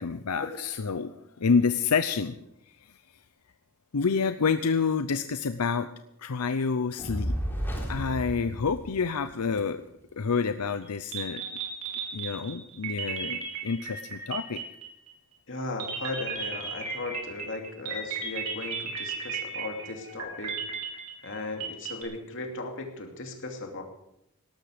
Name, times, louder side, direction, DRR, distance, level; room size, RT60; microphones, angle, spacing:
voice 1, 0.0-2.3 3.9-5.9 6.2-7.3 7.9-9.8 10.2-11.6 12.1-14.6, left 5 dB, 90° left, 10 dB, 0.7 m, -28 dB
Fire, 7.0-9.4, equal, 10° left, 3.7 m, -32 dB
sound 1, 10.8-10.9 11.1-15.1 15.8-22.0, right 5 dB, 80° right, 4.7 m, -35 dB
voice 2, 15.5-20.6 21.2-23.8, left 2 dB, 60° left, 3 dB, 2.7 m, -37 dB
18.0 x 13.0 x 5.1 m, 0.80 s
head